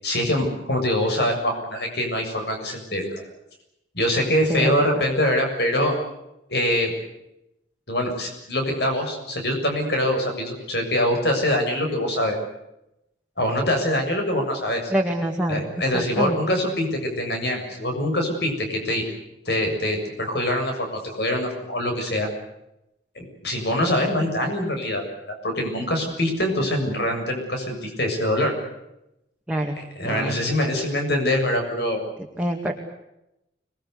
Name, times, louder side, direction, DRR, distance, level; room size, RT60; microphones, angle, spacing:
voice 1, 0.0-3.2 3.9-5.9 6.5-6.9 7.9-12.4 13.4-14.9 15.5-19.0 19.5-22.3 23.2-28.5 29.8-32.0, left 1 dB, 60° left, 4 dB, 7.2 m, -24 dB
voice 2, 14.9-15.6 15.9-16.4 29.5-29.8 30.0-30.4 32.4-32.7, right 1 dB, 5° right, 0 dB, 2.1 m, -25 dB
26.0 x 21.0 x 8.2 m, 0.87 s
head